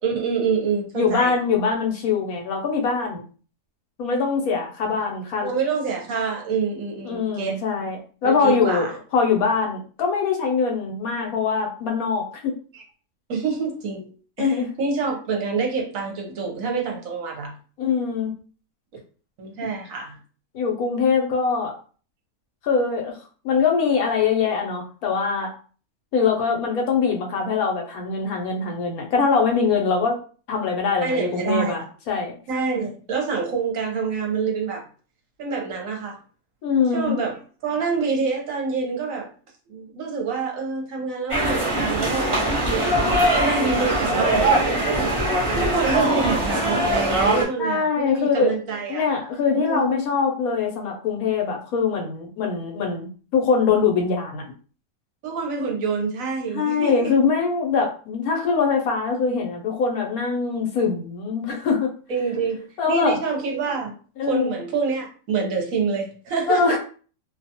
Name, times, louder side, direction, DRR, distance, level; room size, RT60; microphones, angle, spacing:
voice 1, 0.0-1.4 5.4-7.6 8.2-8.9 12.7-12.8 13.3-14.1 14.4-17.5 19.4-20.2 31.0-31.8 32.5-34.8 35.4-36.2 36.9-37.4 37.6-39.3 39.7-42.9 43.3-45.2 45.5-49.1 49.5-49.9 55.2-57.2 62.1-63.9 64.2-66.8, right 5 dB, 65° right, 1 dB, 1.0 m, -26 dB
voice 2, 0.9-3.2 4.0-5.5 7.0-8.9 9.1-12.5 14.4-14.7 17.8-18.3 20.5-21.7 22.6-23.2 23.4-25.5 26.1-30.2 30.5-32.3 36.6-37.1 47.6-48.6 48.9-54.4 56.5-61.9 62.8-63.2 64.2-64.5 66.5-66.8, left 5 dB, 75° left, 1 dB, 1.1 m, -23 dB
sound 1, 41.3-47.4, right 1 dB, 25° right, 0.7 m, -21 dB
2.6 x 2.3 x 2.7 m, 0.40 s
omnidirectional pair, 1.6 m